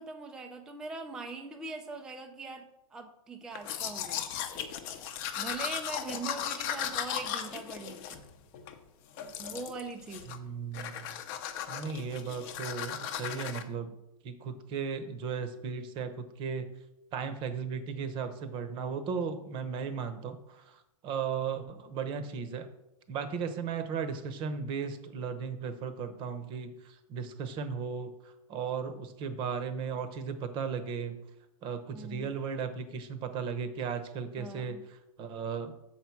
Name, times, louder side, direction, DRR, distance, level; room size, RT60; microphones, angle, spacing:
voice 1, 0.0-4.2 5.4-8.2 9.4-10.4 31.9-32.3 34.4-34.8, right 3 dB, 5° right, 4 dB, 0.4 m, -42 dB
Domestic sounds home sounds, 3.5-8.8 9.2-9.8 10.1-10.5 10.7-13.6, left 9 dB, 35° left, 0.8 m, -37 dB
voice 2, 10.3-11.1 11.7-14.0 14.2-16.6 17.1-22.7 23.1-28.1 28.5-31.2 31.6-35.7, right 6 dB, 25° right, 10 dB, 0.9 m, -36 dB
7.0 x 4.7 x 7.0 m, 0.87 s
hypercardioid pair, 150°, 19 cm